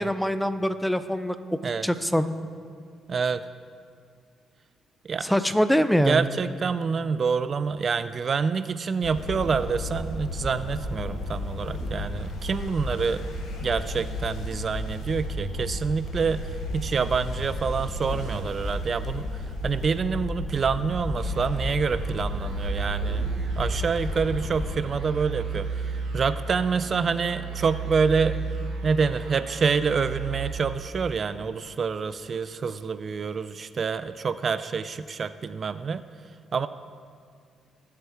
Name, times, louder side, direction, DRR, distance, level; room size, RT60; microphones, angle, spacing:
voice 1, 0.0-2.3 5.2-6.3, equal, 5° left, 11 dB, 0.6 m, -24 dB
voice 2, 3.1-3.4 5.0-5.3 6.0-13.2 13.6-23.3 23.6-28.4 28.8-36.0 36.5-36.7, right 5 dB, 45° right, 13 dB, 0.4 m, -27 dB
sound 1, 9.0-24.7, left 1 dB, 80° left, 1.6 m, -33 dB
sound 2, 21.2-31.5, right 4 dB, 80° right, 3.1 m, -34 dB
18.5 x 8.2 x 3.5 m, 2.2 s
cardioid pair, 90°, 0 cm